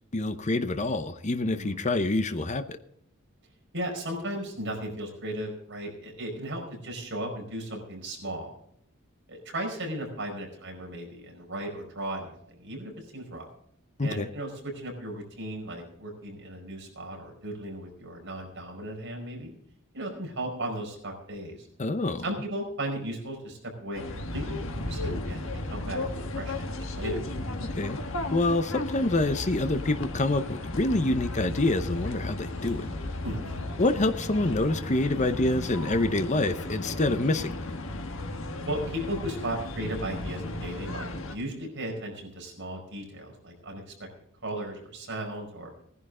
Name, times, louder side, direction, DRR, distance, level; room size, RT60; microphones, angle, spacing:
voice 1, 0.1-2.8 14.0-14.3 21.8-22.3 27.7-28.0 28.3-32.9 33.8-37.7, left 2 dB, 35° left, 9 dB, 0.8 m, -26 dB
voice 2, 3.7-8.5 9.3-13.5 14.0-19.5 19.9-21.7 22.2-24.0 24.3-26.0 26.4-27.2 33.2-33.7 38.7-44.1 44.4-45.7, right 1 dB, 55° right, 1 dB, 4.9 m, -36 dB
sound 1, 23.9-41.4, left 2 dB, 65° left, 1.5 m, -35 dB
18.5 x 11.0 x 3.8 m, 0.70 s
head